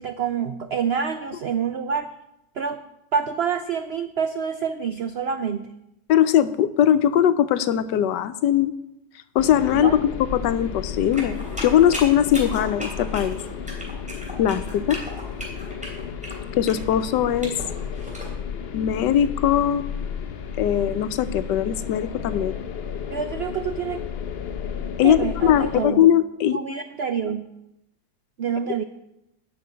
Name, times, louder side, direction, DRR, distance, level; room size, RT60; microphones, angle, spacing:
voice 1, 0.0-2.1 2.6-2.8 3.1-5.7 9.8-10.0 23.1-24.0 25.0-26.0 26.5-27.5 28.4-28.8, right 7 dB, 85° right, 10 dB, 0.5 m, -27 dB
voice 2, 6.1-8.7 9.3-10.0 10.3-13.4 14.4-15.0 16.6-17.6 18.7-19.8 20.6-22.5 25.0-26.6, left 10 dB, 85° left, 13 dB, 1.3 m, -20 dB
sound 1, 9.4-25.9, left 7 dB, 55° left, 0.7 m, -33 dB
sound 2, 11.1-18.3, equal, 5° right, 3.0 m, -37 dB
12.0 x 5.4 x 8.7 m, 0.86 s
omnidirectional pair, 1.8 m